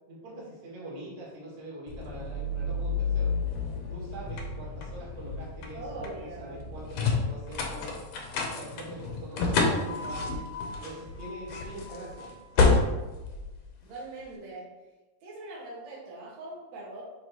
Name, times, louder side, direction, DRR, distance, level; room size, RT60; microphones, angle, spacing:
voice 1, 0.1-3.4 3.9-8.0 8.5-10.3 10.8-12.4, right 1 dB, 80° right, -7 dB, 3.7 m, -43 dB
sound 1, 1.9-14.2, left 4 dB, 80° left, 1.5 m, -30 dB
voice 2, 5.7-6.6 13.8-14.7 15.2-17.0, right 2 dB, 55° right, -7 dB, 2.5 m, -42 dB
9.5 x 3.4 x 2.9 m, 1.1 s
omnidirectional pair, 4.0 m